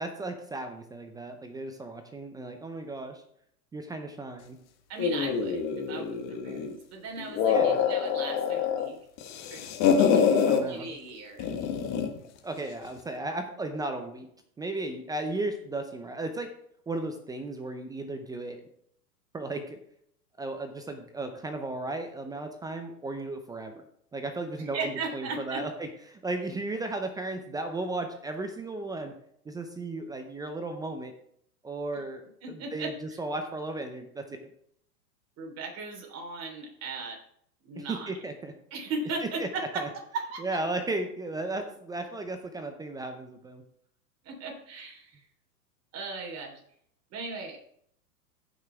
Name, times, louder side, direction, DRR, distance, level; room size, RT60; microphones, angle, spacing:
voice 1, 0.0-3.2 3.7-4.6 7.5-7.8 10.4-10.9 12.4-14.3 14.6-16.5 16.9-18.6 19.3-19.8 20.4-23.7 24.1-29.1 29.5-31.1 31.6-32.9 33.2-34.4 37.8-38.5 39.4-39.5 39.8-39.9 40.4-43.6, right 2 dB, 10° right, 6 dB, 0.6 m, -35 dB
voice 2, 4.9-9.0 9.5-9.6 10.0-10.2 10.6-11.5 24.6-25.6 31.9-32.0 32.4-32.9 35.4-37.2 37.6-38.1 38.7-40.4 44.2-45.2 45.9-46.6 47.1-47.6, right 3 dB, 30° right, 1 dB, 3.5 m, -37 dB
sound 1, 5.0-6.8 7.2-8.9 9.2-10.6 11.4-12.2, left 7 dB, 35° left, 1.4 m, -25 dB
15.0 x 6.2 x 3.4 m, 0.68 s
hypercardioid pair, 120°, 49 cm